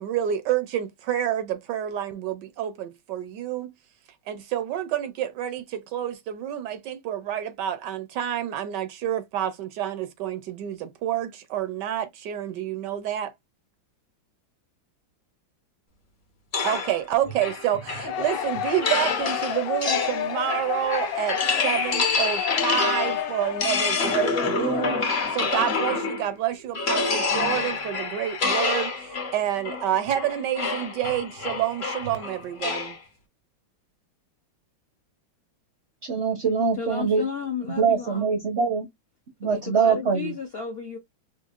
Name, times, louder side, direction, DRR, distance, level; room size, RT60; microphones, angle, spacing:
voice 1, 0.0-3.7 4.3-13.3 16.6-33.0, right 11 dB, 75° right, 1.1 m, -28 dB
sound 1, 16.5-26.3 26.8-33.0, left 4 dB, 45° left, 0.9 m, -27 dB
sound 2, 18.0-25.7, left 10 dB, 90° left, 1.4 m, -31 dB
voice 2, 36.0-37.2 37.8-38.9 39.4-40.3, right 6 dB, 55° right, 0.7 m, -23 dB
voice 3, 36.8-38.3 39.4-41.0, left 6 dB, 65° left, 0.6 m, -33 dB
4.5 x 2.6 x 2.4 m
omnidirectional pair, 2.1 m